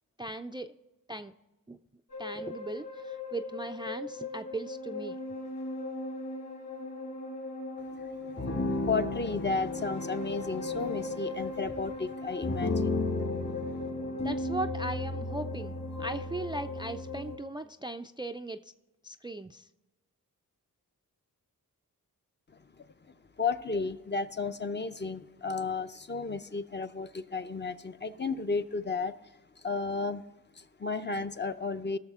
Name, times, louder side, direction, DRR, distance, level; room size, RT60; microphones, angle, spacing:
voice 1, 0.2-0.7 1.1-1.3 1.7-1.8 2.2-5.2 14.2-18.6 19.0-19.7, right 2 dB, 15° right, 8 dB, 0.4 m, -38 dB
sound 1, 2.1-17.4, left 2 dB, 50° left, 2.7 m, -35 dB
voice 2, 8.0-13.1 13.8-13.9 22.8-29.2 29.6-30.2 30.5-32.0, left 4 dB, 30° left, 9 dB, 0.6 m, -33 dB
17.0 x 6.6 x 3.6 m, 1.0 s
cardioid pair, 65°, 36 cm